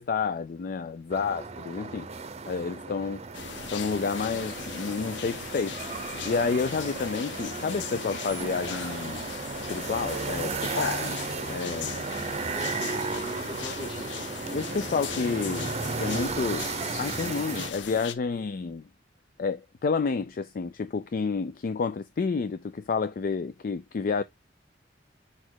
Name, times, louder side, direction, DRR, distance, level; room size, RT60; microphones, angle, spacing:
voice 1, 0.0-2.1 2.5-3.2 3.7-5.8 6.2-9.2 9.7-12.0 14.5-15.7 16.0-16.7 17.0-18.8 19.4-24.2, left 5 dB, 50° left, 0.4 m, -30 dB
sound 1, 1.1-17.7, right 4 dB, 35° right, 0.7 m, -35 dB
sound 2, 3.3-18.1, left 7 dB, 80° left, 0.7 m, -38 dB
voice 2, 12.5-14.3, left 1 dB, 30° left, 1.6 m, -42 dB
5.0 x 4.3 x 4.6 m
head